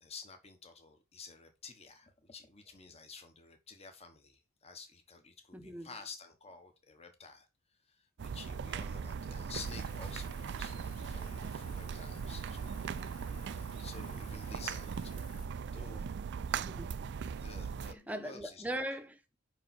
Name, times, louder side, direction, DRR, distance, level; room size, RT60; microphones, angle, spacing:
voice 1, 0.0-7.5 7.8-12.7 13.6-15.3 15.7-16.1 17.4-18.8, left 4 dB, 30° left, 1.3 m, -51 dB
voice 2, 5.5-5.9 16.5-17.0 17.9-19.4, right 1 dB, 5° right, 0.9 m, -40 dB
sound 1, 8.2-17.9, right 6 dB, 50° right, 0.4 m, -39 dB
Engine, 9.6-15.5, left 4 dB, 85° left, 1.0 m, -56 dB
5.5 x 5.0 x 6.0 m
head